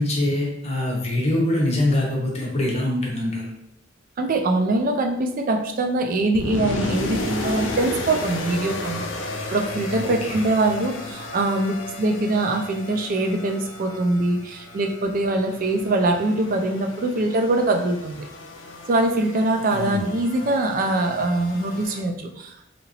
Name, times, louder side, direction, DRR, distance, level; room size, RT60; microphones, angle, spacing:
voice 1, 0.0-3.5 10.0-10.4 19.7-20.0, left 1 dB, 35° left, -1 dB, 0.7 m, -24 dB
voice 2, 4.2-9.1 9.5-18.3 18.9-22.6, right 2 dB, 45° right, 4 dB, 0.4 m, -23 dB
sound 1, 6.4-22.0, left 2 dB, 80° left, 0.5 m, -34 dB
2.9 x 2.5 x 2.8 m, 0.77 s
head